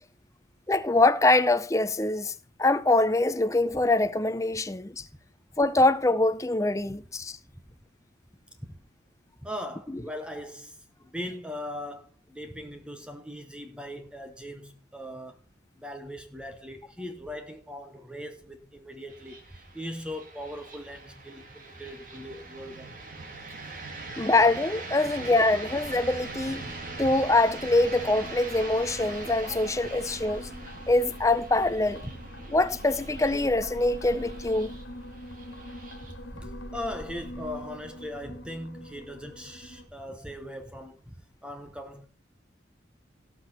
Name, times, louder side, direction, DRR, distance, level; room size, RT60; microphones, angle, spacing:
voice 1, 0.7-5.0 5.6-7.4 24.2-26.6 27.0-30.5 30.9-32.0 32.5-34.8, left 2 dB, 15° left, 0.5 m, -24 dB
voice 2, 9.4-15.4 15.7-23.0 26.4-26.8 27.0-27.2 32.0-32.1 36.3-42.1, left 1 dB, 5° right, 1.0 m, -40 dB
sound 1, 19.1-38.1, right 3 dB, 45° right, 2.3 m, -42 dB
sound 2, 25.8-39.9, equal, 80° left, 1.7 m, -43 dB
17.5 x 6.1 x 4.2 m
head